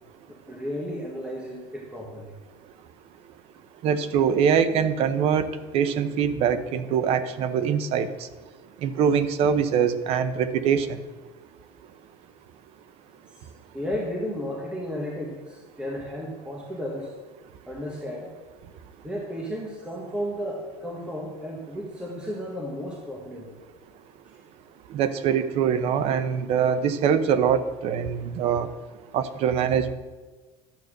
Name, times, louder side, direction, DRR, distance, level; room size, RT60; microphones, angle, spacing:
voice 1, 0.3-2.3 13.3-13.5 13.7-17.1 17.7-18.3 19.0-23.6 24.3-24.4, equal, 10° right, -1 dB, 1.6 m, -33 dB
voice 2, 3.8-8.1 8.8-11.0 24.9-28.7 29.1-29.9, right 7 dB, 60° right, 13 dB, 0.9 m, -23 dB
12.0 x 8.3 x 6.6 m, 1.3 s
cardioid pair, 140°, 12 cm